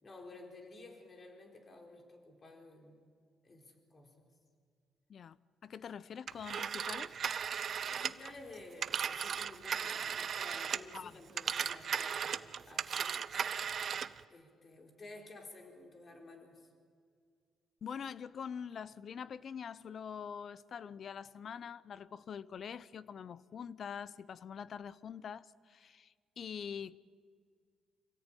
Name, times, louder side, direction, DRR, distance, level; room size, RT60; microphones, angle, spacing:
voice 1, 0.0-3.0 3.4-4.3 7.9-13.4 14.3-16.7, left 2 dB, 40° left, 4.4 m, -53 dB
voice 2, 5.6-7.2 10.9-11.2 17.8-27.0, left 7 dB, 55° left, 0.7 m, -44 dB
Telephone, 6.3-11.0 11.3-14.2, right 7 dB, 55° right, 0.7 m, -36 dB
26.5 x 17.5 x 9.1 m
cardioid pair, 90°, 0 cm